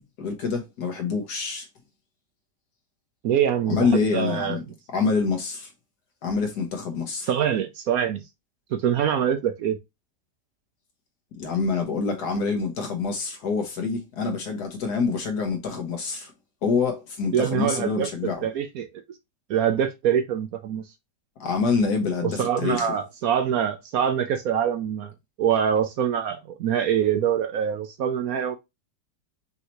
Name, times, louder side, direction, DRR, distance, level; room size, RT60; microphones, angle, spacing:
voice 1, 0.2-1.7 3.7-4.6 4.9-5.7 6.2-7.3 11.3-16.3 16.6-18.5 21.4-22.9, left 4 dB, 70° left, 1.7 m, -26 dB
voice 2, 3.2-4.6 7.3-8.2 8.7-9.8 17.3-18.1 18.4-18.9 19.5-20.8 22.2-25.1 25.4-28.6, right 9 dB, 70° right, 0.9 m, -24 dB
5.6 x 2.8 x 3.0 m
omnidirectional pair, 1.8 m